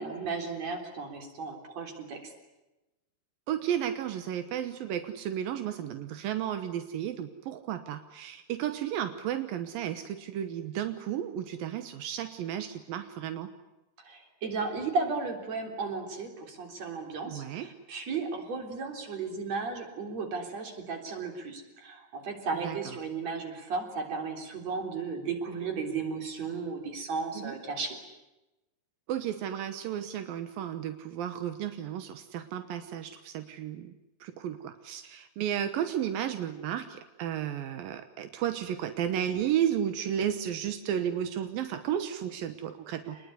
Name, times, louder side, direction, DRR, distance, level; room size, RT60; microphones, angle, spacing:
voice 1, 0.0-2.3 14.0-28.0, right 4 dB, 50° right, 3 dB, 4.7 m, -35 dB
voice 2, 3.5-13.5 17.3-17.7 22.6-22.9 27.3-27.5 29.1-33.9 34.2-43.2, right 10 dB, 85° right, 9 dB, 2.9 m, -33 dB
27.5 x 20.5 x 9.8 m, 1.0 s
omnidirectional pair, 4.0 m